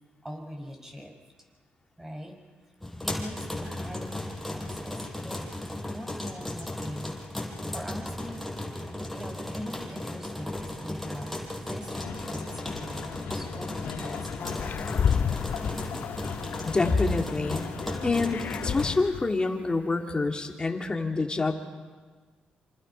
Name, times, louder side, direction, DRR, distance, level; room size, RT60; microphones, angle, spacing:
voice 1, 0.2-1.2 2.0-2.4 3.0-7.2 7.7-8.5 9.1-14.3 14.6-15.0, equal, 10° right, 3 dB, 6.2 m, -42 dB
sound 1, 2.8-18.9, left 1 dB, 5° left, 5.7 m, -36 dB
sound 2, 11.9-18.9, left 7 dB, 75° left, 2.1 m, -38 dB
sound 3, 14.4-17.1 17.5-19.3, left 7 dB, 55° left, 0.6 m, -31 dB
voice 2, 16.6-17.6 18.0-21.5, left 3 dB, 25° left, 2 dB, 3.1 m, -27 dB
27.0 x 27.0 x 5.8 m, 1.4 s
supercardioid pair, 65°, 3 cm